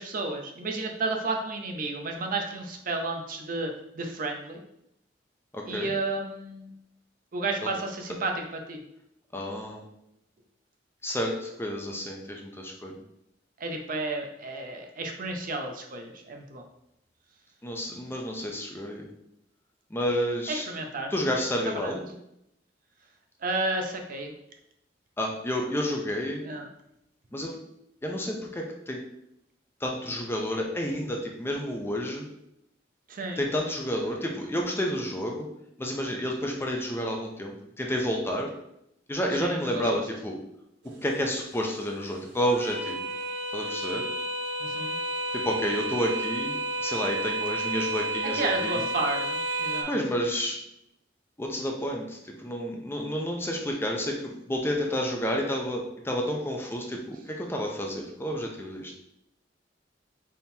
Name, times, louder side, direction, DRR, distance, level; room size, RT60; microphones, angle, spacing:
voice 1, 0.0-4.6 5.7-6.7 7.3-8.8 13.6-16.6 20.5-21.1 21.8-21.9 23.4-24.3 26.4-26.7 33.1-33.4 39.4-40.0 44.6-44.9 48.3-49.9, right 2 dB, 50° right, 3 dB, 0.6 m, -32 dB
voice 2, 5.5-5.9 9.3-9.8 11.0-13.0 17.6-19.1 19.9-20.7 21.1-22.0 25.2-26.4 27.3-27.6 28.0-29.0 29.8-32.3 33.4-35.5 35.8-38.5 39.1-40.4 41.0-43.0 43.5-44.0 45.3-48.8 49.9-50.6 51.4-58.9, equal, 15° left, 0 dB, 0.5 m, -30 dB
sound 1, 40.9-49.8, right 2 dB, 85° right, 0.7 m, -32 dB
4.3 x 3.6 x 2.7 m, 0.79 s
head